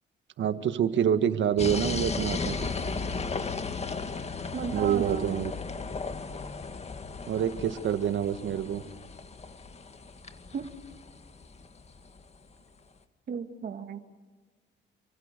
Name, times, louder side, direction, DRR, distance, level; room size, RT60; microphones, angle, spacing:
voice 1, 0.4-2.7 4.7-5.5 7.3-8.8, right 9 dB, 70° right, 10 dB, 1.8 m, -27 dB
sound 1, 1.6-12.3, left 4 dB, 30° left, 2.1 m, -35 dB
voice 2, 4.5-5.5 10.5-10.6 13.3-14.0, right 7 dB, 50° right, 7 dB, 2.2 m, -34 dB
29.0 x 25.5 x 6.8 m, 1.4 s
cardioid pair, 90°, 20 cm